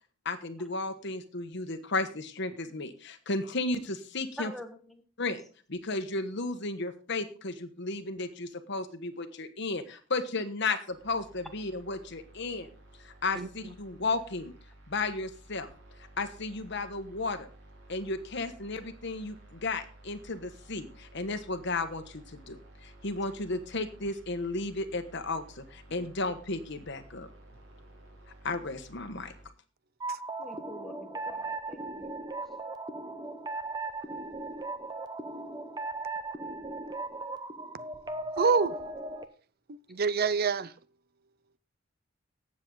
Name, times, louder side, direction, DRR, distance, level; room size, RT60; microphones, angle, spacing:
voice 1, 0.2-4.5 5.2-5.4 5.7-12.7 13.0-14.5 14.9-15.7 16.2-17.5 17.9-27.3 28.4-29.3, left 3 dB, 60° left, 1.3 m, -34 dB
voice 2, 4.4-5.0 30.4-32.1, equal, ahead, 1.5 m, -44 dB
sound 1, 10.9-29.4, right 1 dB, 90° right, 4.6 m, -54 dB
sound 2, 30.0-39.2, right 2 dB, 20° right, 0.9 m, -37 dB
voice 3, 38.4-38.7 39.7-40.7, right 5 dB, 50° right, 0.6 m, -26 dB
18.0 x 7.5 x 3.9 m
head